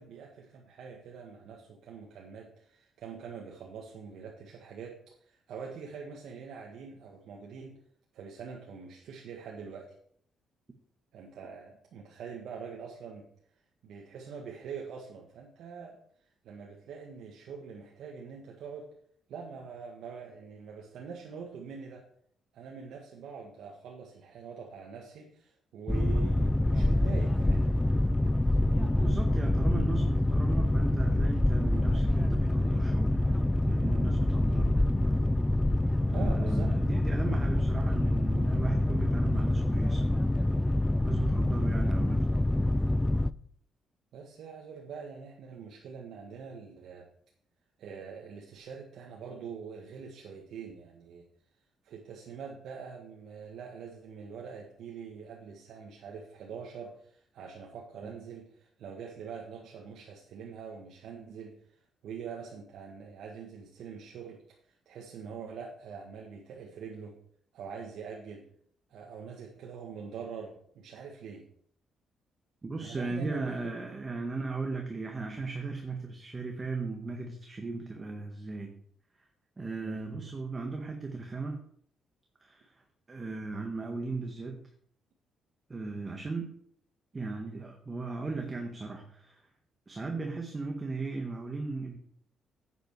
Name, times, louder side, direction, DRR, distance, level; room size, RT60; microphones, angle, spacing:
voice 1, 0.0-5.0 5.3-7.7 8.1-9.9 11.1-13.3 13.8-16.0 16.4-18.9 19.3-22.0 22.5-27.6 36.1-36.7 44.1-47.1 47.8-51.3 51.8-61.5 62.0-67.1 67.5-68.4 68.9-71.4 72.8-73.5 74.1-74.2 79.8-80.0, right 6 dB, 75° right, -1 dB, 1.7 m, -44 dB
Boat Water vehicle, 25.9-43.3, left 1 dB, 10° left, 0.4 m, -26 dB
voice 2, 28.8-33.2 33.5-34.8 36.1-40.4 41.0-42.3 58.0-58.1 72.6-78.8 79.6-81.6 82.4-84.7 85.7-86.5 87.1-89.5 89.9-92.0, right 3 dB, 25° right, 3 dB, 1.5 m, -37 dB
10.0 x 8.2 x 4.8 m, 0.62 s
cardioid pair, 90°, 0 cm